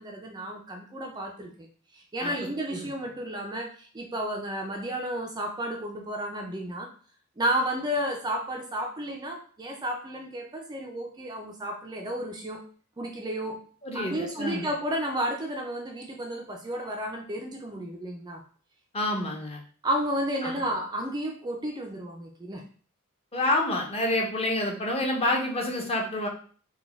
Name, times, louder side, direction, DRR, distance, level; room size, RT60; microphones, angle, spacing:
voice 1, 0.0-1.5 1.9-6.9 7.4-12.6 13.0-13.6 13.9-18.4 19.8-22.6, right 1 dB, 20° right, 1 dB, 0.4 m, -32 dB
voice 2, 13.8-14.7 18.9-19.6 20.4-20.6 23.3-26.3, left 1 dB, 25° left, 0 dB, 0.8 m, -28 dB
3.9 x 2.2 x 3.4 m, 0.43 s
head